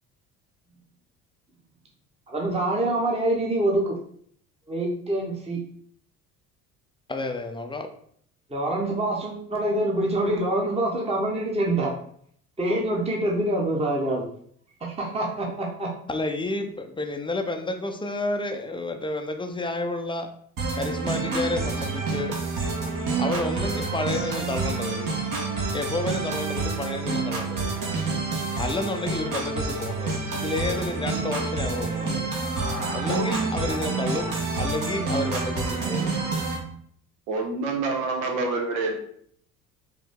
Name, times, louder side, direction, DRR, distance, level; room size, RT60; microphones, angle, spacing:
voice 1, 2.3-4.0 4.7-5.6 8.5-11.9 12.6-14.2 14.8-15.9, right 1 dB, 15° right, -1 dB, 1.0 m, -25 dB
voice 2, 7.1-7.9 16.1-20.3 20.8-22.4 23.2-25.1 25.7-27.7 28.6-32.3 32.9-34.3 34.6-36.1, left 2 dB, 10° left, 5 dB, 0.6 m, -30 dB
sound 1, 20.6-36.6, right 3 dB, 50° right, 1.4 m, -28 dB
voice 3, 32.4-33.3 37.3-38.9, right 3 dB, 75° right, 2 dB, 1.1 m, -28 dB
5.0 x 2.8 x 3.6 m, 0.63 s
hypercardioid pair, 60°, 42 cm